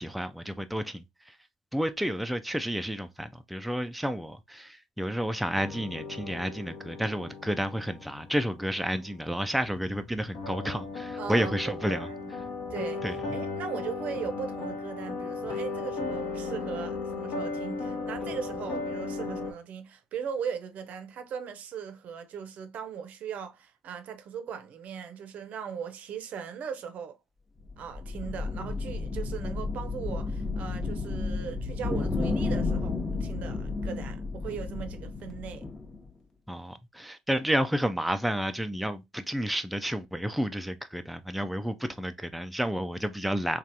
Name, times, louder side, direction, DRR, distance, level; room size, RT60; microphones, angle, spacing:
voice 1, 0.0-1.4 1.7-12.4 13.0-13.2 36.5-43.6, equal, ahead, 0.3 m, -31 dB
sound 1, 5.5-19.5, left 3 dB, 55° left, 0.9 m, -36 dB
voice 2, 11.2-12.0 12.2-12.3 12.7-13.0 13.3-27.2 27.8-35.7, right 7 dB, 55° right, 0.6 m, -38 dB
sound 2, 27.6-36.1, left 3 dB, 20° left, 0.8 m, -32 dB
3.2 x 2.4 x 2.6 m
hypercardioid pair, 65°, 3 cm